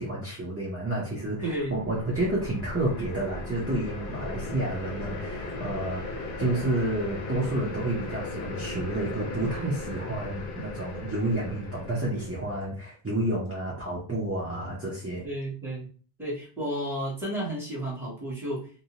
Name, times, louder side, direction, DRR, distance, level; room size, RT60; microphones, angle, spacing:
voice 1, 0.0-15.2, right 1 dB, 20° right, -6 dB, 0.5 m, -30 dB
sound 1, 1.2-12.6, left 2 dB, 65° left, 0.7 m, -37 dB
voice 2, 1.4-1.8 15.2-15.9 16.2-18.7, right 1 dB, ahead, -7 dB, 1.0 m, -32 dB
2.6 x 2.1 x 2.8 m, 0.41 s
omnidirectional pair, 1.0 m